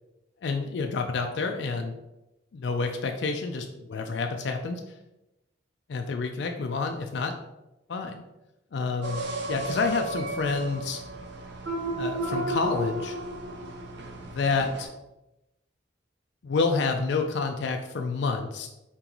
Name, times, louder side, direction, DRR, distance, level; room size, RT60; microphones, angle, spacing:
voice 1, 0.4-1.9 2.5-4.8 5.9-7.4 7.9-8.2 8.7-11.0 11.9-13.2 14.3-14.9 16.4-18.7, left 4 dB, 65° left, 4 dB, 0.4 m, -29 dB
sound 1, 9.0-14.8, right 2 dB, 60° right, 0.7 m, -33 dB
4.4 x 2.9 x 3.8 m, 0.95 s
head